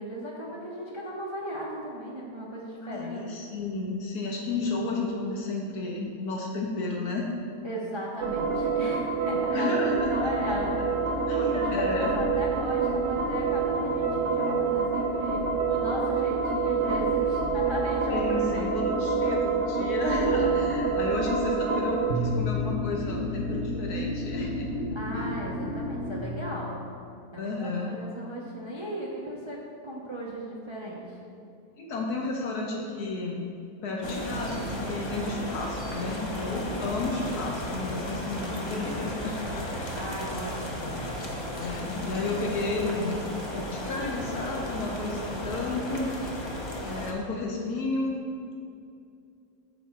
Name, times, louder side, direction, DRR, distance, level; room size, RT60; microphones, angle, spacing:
voice 1, 0.0-3.2 7.6-9.7 10.1-18.7 24.9-26.8 27.3-31.2 36.5-36.9 39.9-41.0, equal, 25° right, -4 dB, 0.7 m, -36 dB
voice 2, 2.8-7.3 9.5-10.5 11.3-12.2 18.1-24.7 25.1-25.3 27.4-27.9 31.8-33.5 33.8-40.0 41.6-43.2 43.5-46.6 46.8-48.2, left 2 dB, 75° left, -1 dB, 1.4 m, -32 dB
sound 1, 8.2-26.2, right 4 dB, 55° right, 1.0 m, -28 dB
sound 2, 34.0-47.1, equal, 30° left, 0.5 m, -34 dB
8.4 x 4.3 x 5.8 m, 2.6 s
omnidirectional pair, 1.7 m